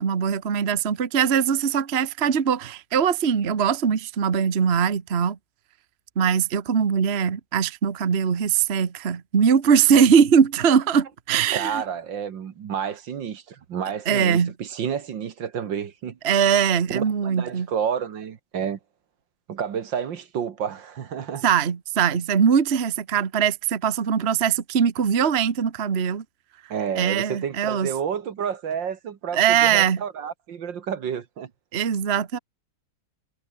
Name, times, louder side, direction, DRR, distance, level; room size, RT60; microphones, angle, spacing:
voice 1, 0.0-5.4 6.2-11.8 14.1-14.5 16.2-17.7 21.4-26.2 27.0-27.9 29.3-30.0 31.7-32.4, right 7 dB, 35° right, 1.3 m, -21 dB
voice 2, 11.5-16.2 16.9-18.8 19.5-21.4 26.7-31.5, right 7 dB, 65° right, 2.0 m, -30 dB
omnidirectional pair, 2.3 m